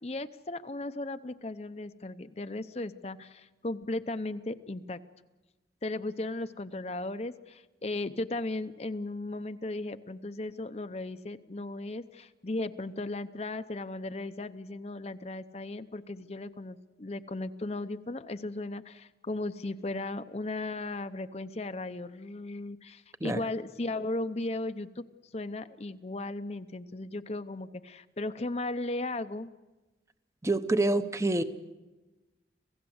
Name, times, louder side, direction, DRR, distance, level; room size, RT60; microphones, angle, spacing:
voice 1, 0.0-5.0 5.8-25.0 25.3-29.5, left 2 dB, 35° left, 10 dB, 0.7 m, -36 dB
voice 2, 30.4-31.4, right 2 dB, 15° right, 11 dB, 0.8 m, -26 dB
27.0 x 17.0 x 7.9 m, 1.1 s
head